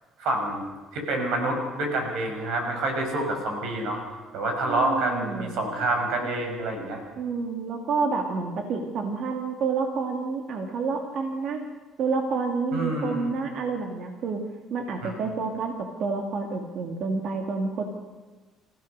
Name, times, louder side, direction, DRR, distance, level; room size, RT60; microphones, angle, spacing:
voice 1, 0.2-0.6 0.9-4.0 4.3-7.0 12.7-13.3 15.0-15.1, right 2 dB, 80° right, 3 dB, 5.7 m, -27 dB
voice 2, 4.6-5.6 7.2-11.6 12.0-14.4 14.7-15.7 16.0-17.8, right 4 dB, 60° right, 3 dB, 2.4 m, -29 dB
28.0 x 15.5 x 6.7 m, 1.3 s
cardioid pair, 90°, 0 cm